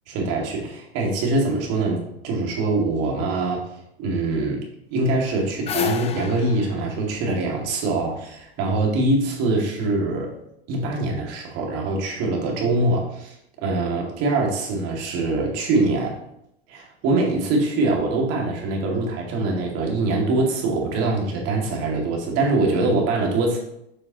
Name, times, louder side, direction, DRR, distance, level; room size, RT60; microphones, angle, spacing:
voice 1, 0.1-3.7 4.0-4.6 4.9-10.3 10.7-16.2 16.7-23.6, right 2 dB, 50° right, 0 dB, 2.3 m, -23 dB
sound 1, 5.2-8.3, left 10 dB, 20° left, 0.5 m, -31 dB
7.7 x 6.0 x 3.0 m, 0.78 s
hypercardioid pair, 105°, 32 cm